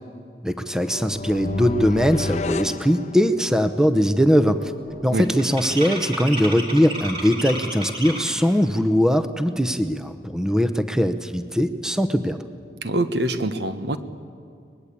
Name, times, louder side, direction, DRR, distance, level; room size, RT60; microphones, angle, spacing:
voice 1, 0.4-4.7 5.0-12.4, equal, 5° right, 10 dB, 0.8 m, -21 dB
sound 1, 0.7-3.8, left 3 dB, 40° left, 0.5 m, -30 dB
sound 2, 3.3-3.6 3.9-8.5, right 1 dB, 30° right, 3.5 m, -33 dB
voice 2, 12.8-14.0, right 1 dB, 70° right, 10 dB, 1.3 m, -24 dB
23.5 x 20.5 x 8.5 m, 2.3 s
head